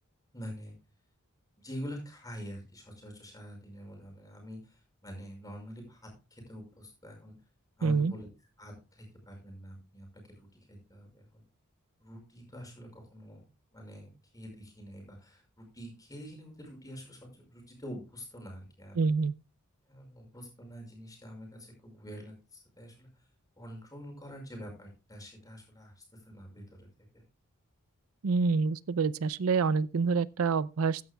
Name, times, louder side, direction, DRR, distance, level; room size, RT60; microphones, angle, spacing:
voice 1, 0.3-0.7 1.6-7.3 7.8-8.3 8.6-11.4 12.0-13.4 13.7-19.1 19.9-23.3 23.6-26.9 27.1-27.2, equal, 15° left, 5.6 m, -46 dB
voice 2, 7.8-8.1 19.0-19.3 28.2-31.0, right 4 dB, 75° right, 0.5 m, -27 dB
15.0 x 11.0 x 2.3 m
head